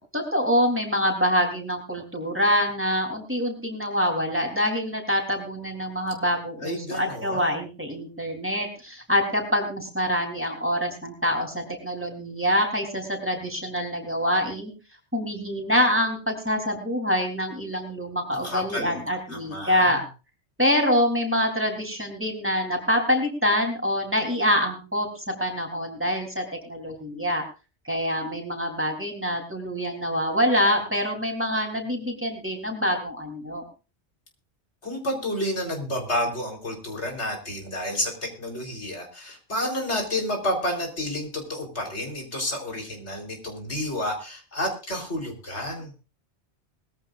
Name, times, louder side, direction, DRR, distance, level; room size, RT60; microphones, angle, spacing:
voice 1, 0.1-14.7 15.1-20.0 20.6-27.4 27.8-33.6, equal, 10° right, 2 dB, 3.7 m, -25 dB
voice 2, 6.6-7.5 18.4-19.0 19.3-19.9 34.8-45.9, left 1 dB, 80° left, 2 dB, 4.4 m, -30 dB
21.0 x 14.5 x 2.6 m, 0.32 s
omnidirectional pair, 1.1 m